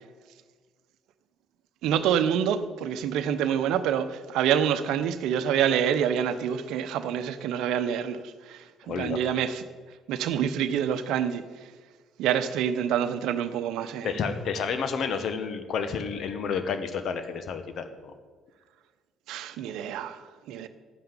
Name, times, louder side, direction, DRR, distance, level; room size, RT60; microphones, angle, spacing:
voice 1, 1.8-9.6 10.1-11.7 12.2-14.1 19.3-20.7, right 9 dB, 70° right, 0.8 m, -27 dB
voice 2, 8.9-9.2 14.0-18.1, left 6 dB, 60° left, 1.3 m, -30 dB
11.0 x 9.3 x 6.9 m
hypercardioid pair, 50°, 0 cm